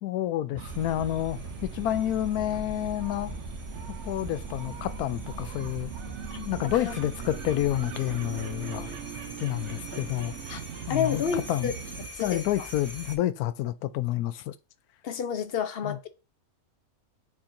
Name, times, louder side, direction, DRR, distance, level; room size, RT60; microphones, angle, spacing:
voice 1, 0.0-3.3 4.0-5.9 6.4-8.9 9.4-10.3 10.9-11.7 12.2-14.5 15.8-16.0, left 13 dB, 90° left, 1.1 m, -29 dB
sound 1, 0.5-7.9, right 3 dB, 85° right, 1.9 m, -43 dB
sound 2, 0.6-12.1, right 9 dB, 65° right, 0.8 m, -41 dB
sound 3, 0.7-13.2, left 2 dB, 10° left, 1.3 m, -44 dB
voice 2, 10.9-11.7 12.2-12.4 15.0-16.1, left 7 dB, 60° left, 0.7 m, -29 dB
8.4 x 4.4 x 2.6 m
omnidirectional pair, 1.5 m